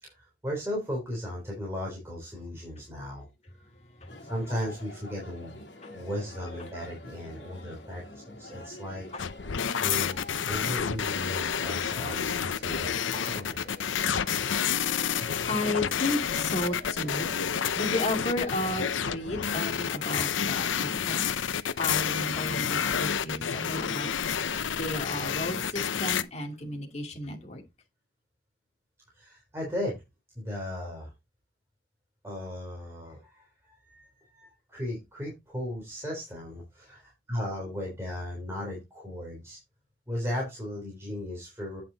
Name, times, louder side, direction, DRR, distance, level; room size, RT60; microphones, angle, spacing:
voice 1, 0.0-3.3 4.2-5.6 5.9-9.1 9.8-13.7 29.1-30.0 30.3-31.1 32.2-39.6 40.1-41.8, left 1 dB, 15° right, 3.4 m, -36 dB
sound 1, 4.1-20.3, left 1 dB, 65° left, 3.0 m, -46 dB
sound 2, 9.2-26.2, left 7 dB, 90° left, 0.7 m, -29 dB
voice 2, 15.1-17.3 17.7-21.3 21.8-24.1 24.4-27.6, left 1 dB, 35° left, 2.3 m, -33 dB
9.2 x 5.7 x 3.9 m
head